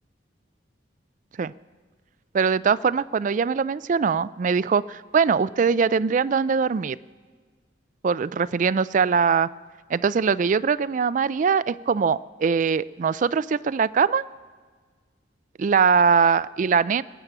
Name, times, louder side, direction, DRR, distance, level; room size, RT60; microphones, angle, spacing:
voice 1, 2.3-7.0 8.0-9.5 9.9-14.2 15.6-17.0, right 6 dB, 45° right, 17 dB, 0.3 m, -22 dB
22.5 x 8.7 x 6.0 m, 1.5 s
head